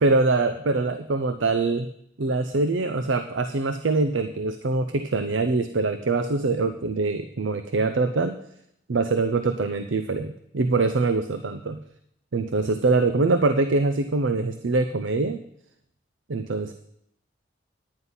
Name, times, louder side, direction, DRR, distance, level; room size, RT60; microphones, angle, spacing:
voice 1, 0.0-1.9 2.2-8.4 8.9-11.8 12.3-15.4 16.3-16.7, right 3 dB, 85° right, 10 dB, 0.6 m, -24 dB
9.8 x 9.7 x 5.5 m, 0.73 s
head